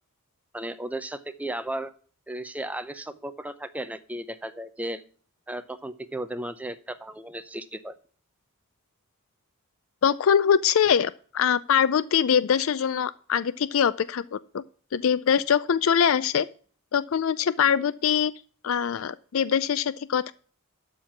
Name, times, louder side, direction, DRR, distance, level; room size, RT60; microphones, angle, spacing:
voice 1, 0.5-1.9 2.3-5.0 5.5-7.9, right 1 dB, 5° right, 0.6 m, -35 dB
voice 2, 10.0-14.6 14.9-16.5 16.9-18.3 18.6-20.3, left 8 dB, 65° left, 0.4 m, -23 dB
12.5 x 4.5 x 5.8 m
head